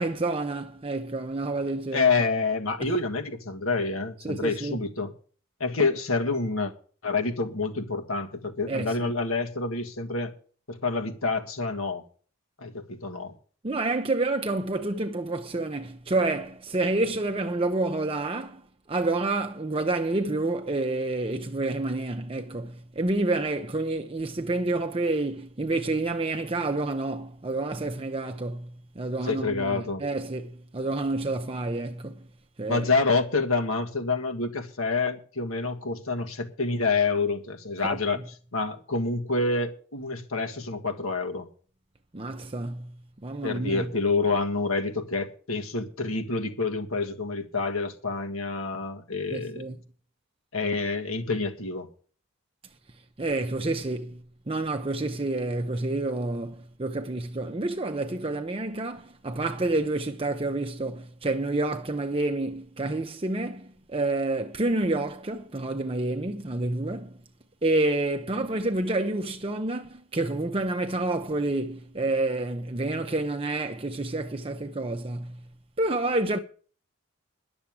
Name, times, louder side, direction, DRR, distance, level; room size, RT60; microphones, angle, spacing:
voice 1, 0.0-2.1 2.8-2.9 4.2-4.8 8.7-9.1 13.6-18.6 18.9-32.3 32.6-32.9 37.8-38.2 42.1-42.9 43.2-43.9 49.3-49.8 53.2-67.2 67.6-75.4 75.8-76.4, right 2 dB, 25° right, 0.6 m, -29 dB
voice 2, 1.9-5.1 5.6-6.7 7.0-10.3 10.7-12.0 12.6-13.3 29.2-30.0 32.7-38.2 38.5-41.5 43.4-49.6 50.5-51.9, left 3 dB, 80° left, 1.7 m, -27 dB
11.0 x 7.0 x 8.7 m
head